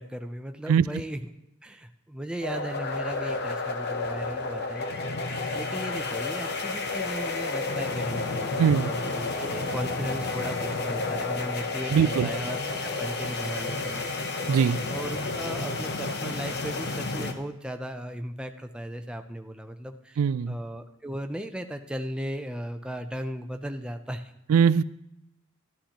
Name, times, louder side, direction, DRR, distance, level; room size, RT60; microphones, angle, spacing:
voice 1, 0.0-1.3 1.6-4.9 5.5-14.1 14.9-24.3, equal, 5° right, 5 dB, 0.5 m, -36 dB
sound 1, 2.4-17.3, left 3 dB, 50° left, 0.8 m, -31 dB
voice 2, 8.6-8.9 11.9-12.3 14.5-14.8 20.2-20.5 24.5-24.8, right 7 dB, 80° right, 18 dB, 0.3 m, -21 dB
13.0 x 11.5 x 2.9 m, 0.88 s
head